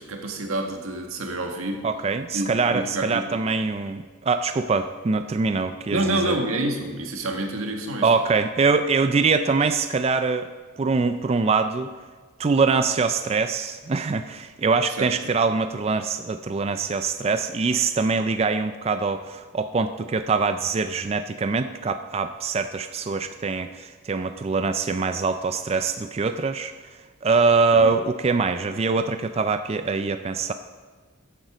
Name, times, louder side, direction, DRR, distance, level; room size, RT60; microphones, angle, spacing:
voice 1, 0.0-1.8 2.3-3.4 5.9-8.1 15.0-15.1 27.7-28.0, right 2 dB, 90° right, 3 dB, 1.7 m, -28 dB
voice 2, 1.8-6.3 8.0-10.5 10.8-11.9 12.4-26.7 27.2-30.5, right 4 dB, 30° right, 9 dB, 0.3 m, -23 dB
14.5 x 8.2 x 5.0 m, 1.4 s
head